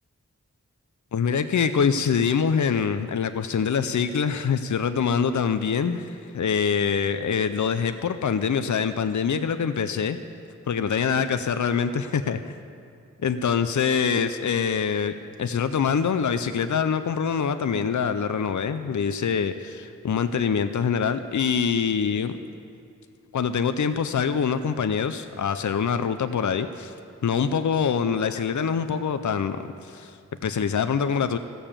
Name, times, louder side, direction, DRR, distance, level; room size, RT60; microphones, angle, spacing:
voice 1, 1.1-10.2 10.7-12.6 13.2-15.1 15.4-22.4 23.3-26.9 27.2-31.4, left 6 dB, 70° left, 10 dB, 0.5 m, -24 dB
15.5 x 6.9 x 7.3 m, 2.5 s
wide cardioid pair, 45°, 31 cm